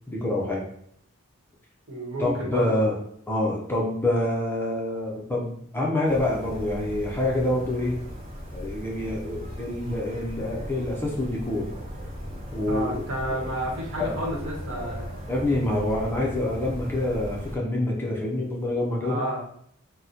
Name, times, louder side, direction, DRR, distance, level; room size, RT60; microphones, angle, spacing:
voice 1, 0.1-0.6 2.2-3.0 3.3-8.0 8.5-11.7 12.5-12.9 14.0-14.2 15.3-19.2, left 1 dB, 10° left, -3 dB, 0.4 m, -26 dB
voice 2, 1.9-2.8 12.7-15.0 19.0-19.4, right 1 dB, 65° right, -2 dB, 1.0 m, -31 dB
sound 1, 6.1-17.6, equal, 30° right, 0.7 m, -38 dB
2.8 x 2.0 x 3.7 m, 0.68 s
head